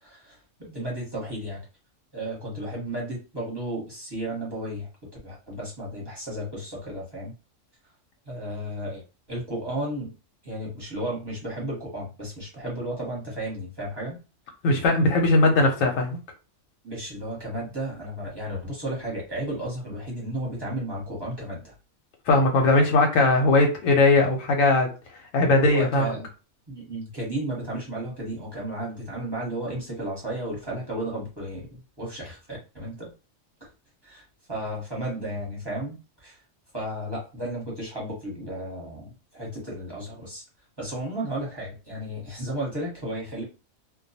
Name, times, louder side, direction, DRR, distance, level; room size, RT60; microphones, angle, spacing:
voice 1, 0.0-1.6 2.1-4.9 5.2-7.3 8.3-9.0 9.3-10.1 10.4-14.2 16.8-21.7 25.5-26.3 26.7-33.1 33.6-33.7 34.0-36.0 36.2-36.4 36.7-40.4 40.8-43.4, right 1 dB, 20° right, -5 dB, 1.0 m, -33 dB
voice 2, 14.6-16.2 22.3-24.9 25.3-26.1, left 2 dB, 85° left, 2 dB, 1.0 m, -19 dB
2.2 x 2.2 x 2.6 m, 0.32 s
omnidirectional pair, 1.3 m